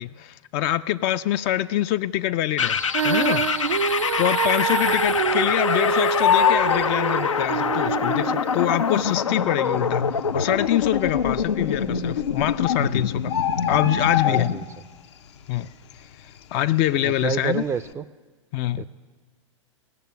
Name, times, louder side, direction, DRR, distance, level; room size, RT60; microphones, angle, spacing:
voice 1, 0.0-3.5 4.2-13.3 13.7-14.5 15.5-15.7 16.5-17.6 18.5-18.9, left 13 dB, 40° left, 0.4 m, -25 dB
sound 1, 2.6-14.6, left 6 dB, 85° left, 0.7 m, -25 dB
Female singing, 2.9-9.2, right 8 dB, 90° right, 0.5 m, -26 dB
Bird, 3.2-3.8 4.2-4.3 4.5-5.7 6.0-7.8 8.7-8.8 9.4-9.5 9.7-9.8 10.4-10.9 11.9-12.0 12.3-12.4 12.6-14.9 15.3-15.6 15.9-17.3 17.6-17.9, left 9 dB, 65° left, 0.8 m, -24 dB
voice 2, 14.2-14.6 17.0-18.0 18.8-18.9, right 6 dB, 15° right, 0.5 m, -28 dB
18.0 x 6.7 x 9.3 m
hypercardioid pair, 110°, 16 cm